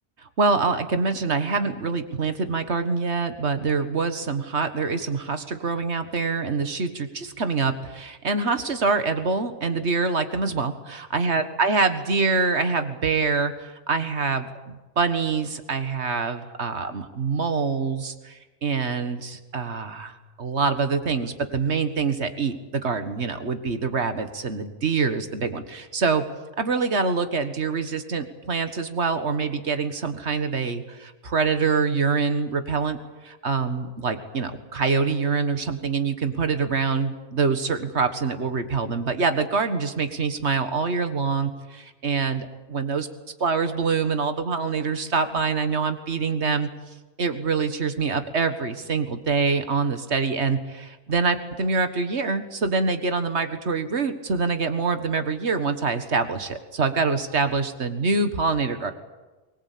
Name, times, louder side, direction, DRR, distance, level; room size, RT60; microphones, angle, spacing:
voice 1, 0.4-26.2 26.6-33.0 33.2-43.1 43.4-46.7 47.2-58.9, right 4 dB, 65° right, 9 dB, 1.9 m, -25 dB
23.0 x 20.5 x 8.5 m, 1.2 s
omnidirectional pair, 1.2 m